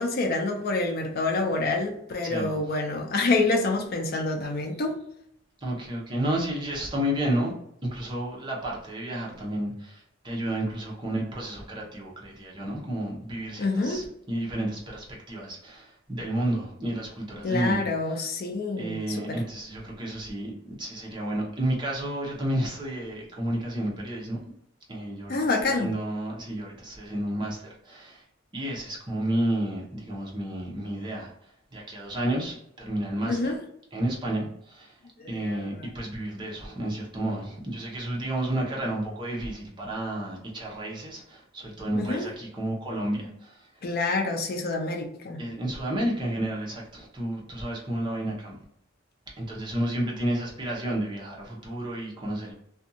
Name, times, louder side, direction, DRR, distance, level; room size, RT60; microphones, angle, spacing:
voice 1, 0.0-5.0 13.6-14.1 17.4-19.4 25.3-25.9 33.2-33.6 35.2-35.8 41.9-42.2 43.8-45.4, left 3 dB, 50° left, 3 dB, 0.4 m, -27 dB
voice 2, 5.6-7.5 7.9-17.8 18.2-18.3 18.8-24.4 24.9-25.4 25.6-28.2 28.5-31.3 31.7-33.4 33.9-35.0 35.3-43.7 45.4-48.6 49.4-52.5, right 1 dB, 25° right, -3 dB, 0.7 m, -31 dB
2.6 x 2.3 x 2.7 m, 0.73 s
head